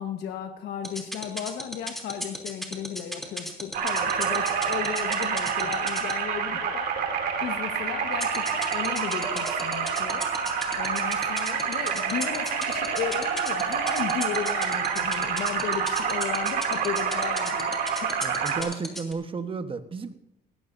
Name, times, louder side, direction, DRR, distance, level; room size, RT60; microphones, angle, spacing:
voice 1, 0.0-10.3 10.7-18.3, left 9 dB, 70° left, 5 dB, 1.4 m, -35 dB
sound 1, 0.8-6.1 8.2-19.1, equal, ahead, 3.2 m, -33 dB
sound 2, 3.7-18.6, right 6 dB, 65° right, 2.8 m, -28 dB
voice 2, 18.2-20.2, right 5 dB, 30° right, 8 dB, 1.2 m, -33 dB
19.5 x 16.5 x 2.7 m, 0.82 s
cardioid pair, 105°, 17 cm